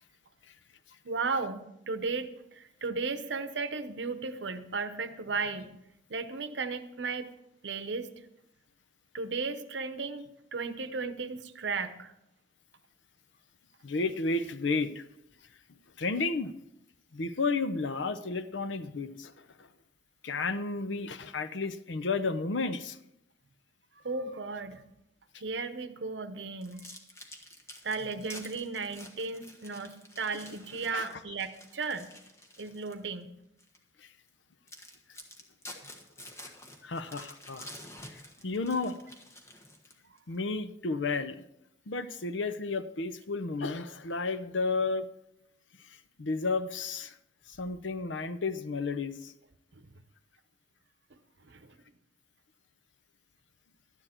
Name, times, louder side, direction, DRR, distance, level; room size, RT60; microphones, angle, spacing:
voice 1, 1.0-2.3 2.6-5.7 6.1-7.3 7.6-8.1 9.1-12.1 24.0-24.8 25.4-26.9 27.8-32.1 32.6-33.3 51.5-51.6, right 4 dB, 70° right, 10 dB, 0.8 m, -35 dB
voice 2, 13.8-15.0 16.0-16.5 17.1-19.3 19.6-19.7 20.2-23.0 30.9-31.2 34.0-34.1 36.8-37.7 38.1-39.0 40.3-41.4 41.9-45.1 46.2-47.1 47.5-49.3, left 3 dB, 80° left, 12 dB, 0.7 m, -32 dB
sound 1, 26.6-33.1 33.6-33.8 34.3-34.4 34.7-40.2, left 1 dB, 15° left, 1.4 m, -49 dB
12.5 x 10.0 x 4.4 m, 0.83 s
head